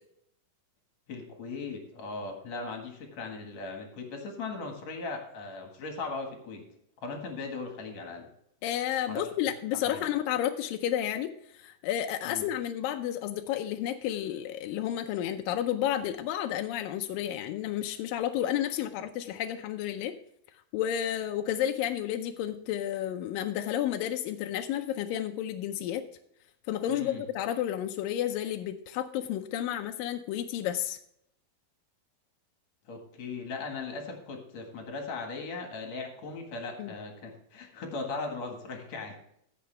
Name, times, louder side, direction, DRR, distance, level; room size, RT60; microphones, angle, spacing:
voice 1, 1.1-6.7 7.0-8.3 9.1-9.3 9.8-10.1 12.2-12.5 26.9-27.2 32.9-39.2, left 3 dB, 55° left, 3 dB, 2.5 m, -38 dB
voice 2, 8.6-20.2 20.7-26.0 26.7-31.0 36.8-36.9, left 11 dB, 80° left, 5 dB, 2.2 m, -31 dB
15.0 x 6.8 x 3.3 m, 0.71 s
omnidirectional pair, 4.3 m